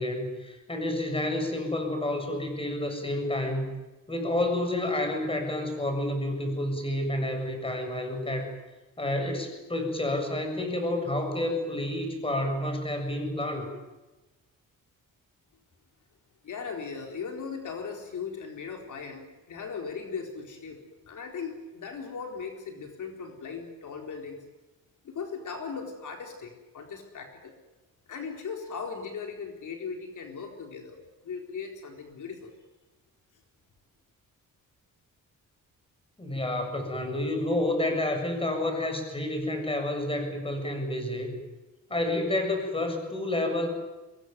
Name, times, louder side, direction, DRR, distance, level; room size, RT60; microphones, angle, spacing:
voice 1, 0.0-3.7 4.1-8.5 9.0-13.7 36.2-41.3 41.9-43.7, left 1 dB, 15° left, 5 dB, 7.3 m, -29 dB
voice 2, 16.4-20.8 21.1-24.4 25.0-27.5 28.1-31.0 31.2-32.5, left 5 dB, 65° left, 3 dB, 4.3 m, -38 dB
24.5 x 21.5 x 9.5 m, 1.1 s
cardioid pair, 115°, 32 cm